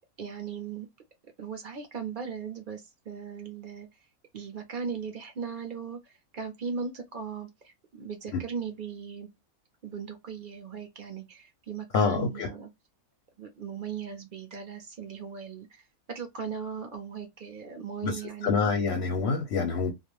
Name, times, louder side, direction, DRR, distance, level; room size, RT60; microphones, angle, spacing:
voice 1, 0.2-0.9 1.4-3.9 4.3-9.3 9.8-12.7 13.4-15.8 16.1-18.6, right 6 dB, 55° right, 0.5 m, -38 dB
voice 2, 11.9-12.5 18.0-19.9, left 5 dB, 60° left, 0.7 m, -27 dB
2.3 x 2.1 x 3.0 m
omnidirectional pair, 1.5 m